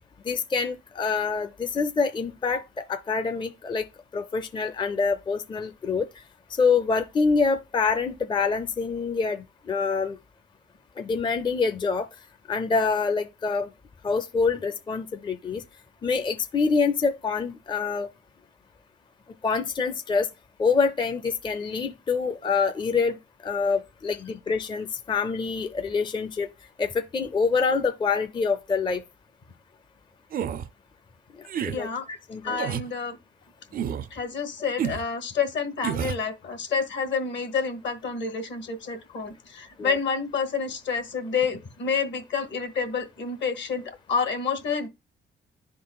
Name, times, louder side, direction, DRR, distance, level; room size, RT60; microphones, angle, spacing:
voice 1, 0.3-2.6 2.9-3.8 4.1-6.1 6.6-10.2 11.0-12.1 12.5-13.7 14.0-15.6 16.0-18.1 19.4-20.3 20.6-23.2 23.4-26.5 26.8-29.0 31.6-31.9 32.3-32.6 39.8-39.9, left 5 dB, 25° left, 0.5 m, -26 dB
sound 1, 30.3-30.7 31.5-31.8 32.6-32.9 33.7-34.1 34.8-35.0 35.8-36.2, right 9 dB, 45° right, 0.4 m, -29 dB
voice 2, 31.7-32.0 32.4-33.2 34.1-44.9, left 5 dB, 65° left, 1.3 m, -29 dB
11.0 x 3.8 x 2.3 m
cardioid pair, 90°, 20 cm